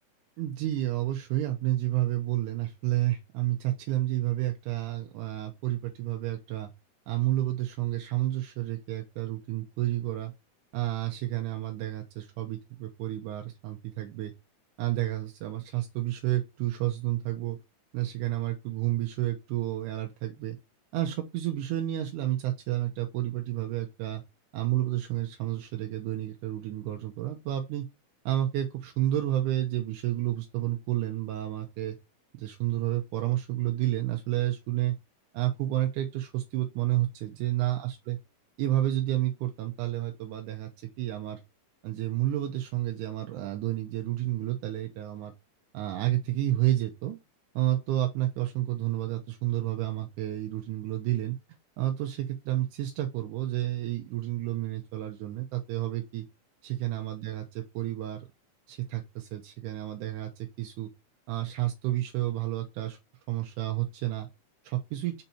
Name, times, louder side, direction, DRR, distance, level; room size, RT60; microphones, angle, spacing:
voice 1, 0.4-6.7 7.1-10.3 10.7-14.3 14.8-17.6 17.9-20.6 20.9-24.2 24.5-27.9 28.3-32.0 32.4-35.0 35.3-38.2 38.6-41.4 41.8-45.3 45.7-47.2 47.6-51.4 51.8-56.3 56.6-58.3 58.7-60.9 61.3-63.0 63.3-64.3 64.6-65.1, right 14 dB, 85° right, 2.2 m, -30 dB
5.4 x 4.1 x 4.2 m
omnidirectional pair, 3.6 m